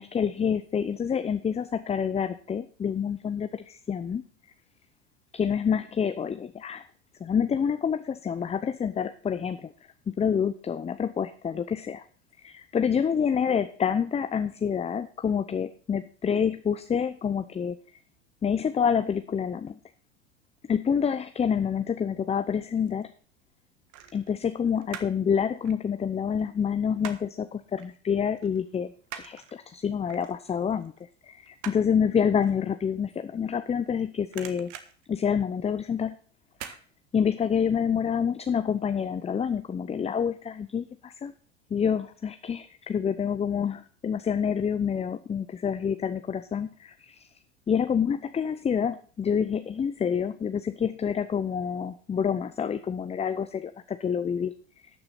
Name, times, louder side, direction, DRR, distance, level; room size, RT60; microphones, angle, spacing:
voice 1, 0.0-4.2 5.3-6.8 7.2-9.7 10.1-12.0 12.4-17.8 18.4-19.7 20.7-23.1 24.1-30.9 31.2-34.7 35.1-36.2 36.7-36.8 37.1-41.3 41.7-47.3 47.7-54.5, left 7 dB, 15° left, 10 dB, 0.7 m, -27 dB
sound 1, 22.4-23.0 23.9-25.3 25.5-27.4 27.8-28.0 28.3-33.9 34.2-35.9 36.5-36.8 37.2-37.3, right 10 dB, 55° right, 1.6 m, -44 dB
12.5 x 6.8 x 5.9 m, 0.42 s
hypercardioid pair, 85°, 36 cm